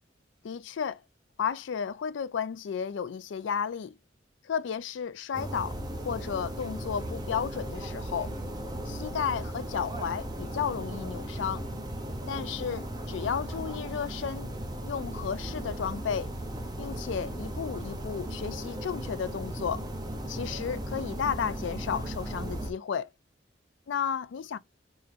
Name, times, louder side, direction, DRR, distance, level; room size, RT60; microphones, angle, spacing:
voice 1, 0.4-1.0 1.4-3.9 4.4-5.8 6.1-8.3 8.9-11.6 12.3-14.5 14.8-16.3 16.8-19.9 20.3-23.1 23.9-24.6, left 7 dB, 90° left, 0.4 m, -33 dB
sound 1, 5.3-22.7, right 1 dB, 20° right, 0.6 m, -36 dB
4.8 x 2.8 x 2.4 m
head